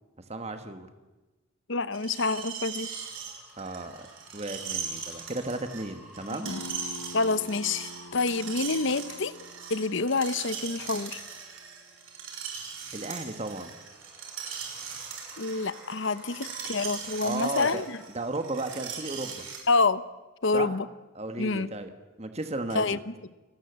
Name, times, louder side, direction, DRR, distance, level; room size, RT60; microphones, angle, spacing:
voice 1, 0.3-0.9 3.6-4.1 4.3-6.5 12.9-13.7 17.2-17.8 18.1-19.5 20.5-20.8 21.1-21.9 22.2-23.0, right 2 dB, 30° right, 7 dB, 1.5 m, -34 dB
voice 2, 1.7-2.9 6.4-6.6 7.1-9.3 9.7-11.2 15.4-18.0 19.7-20.0 20.4-20.9 21.4-21.7 22.7-23.1, left 3 dB, 60° left, 15 dB, 0.9 m, -27 dB
Screech, 1.9-19.6, right 6 dB, 65° right, 6.0 m, -39 dB
sound 1, 2.3-12.2 12.8-18.0, equal, 5° right, 6.5 m, -54 dB
sound 2, 6.4-11.9, left 1 dB, 85° left, 1.6 m, -46 dB
30.0 x 19.0 x 8.2 m, 1.2 s
head